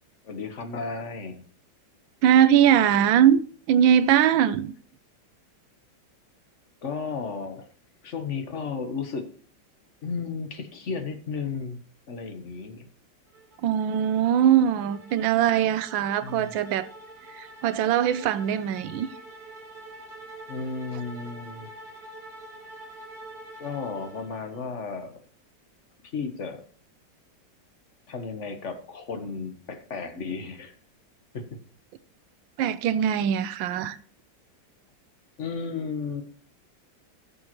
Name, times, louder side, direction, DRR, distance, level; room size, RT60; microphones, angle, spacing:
voice 1, 0.2-1.4 6.8-7.7 8.0-9.3 10.0-11.8 12.1-12.9 16.2-16.5 20.5-21.7 23.6-25.2 26.1-26.6 28.1-30.7 31.3-31.4 35.4-36.2, left 5 dB, 45° left, 1.3 m, -33 dB
voice 2, 2.2-3.4 3.7-4.7 13.6-16.9 17.3-19.1 32.6-34.0, right 9 dB, 90° right, 1.4 m, -21 dB
sound 1, 13.3-24.7, right 2 dB, 55° right, 2.7 m, -46 dB
17.5 x 7.0 x 3.0 m
omnidirectional pair, 2.1 m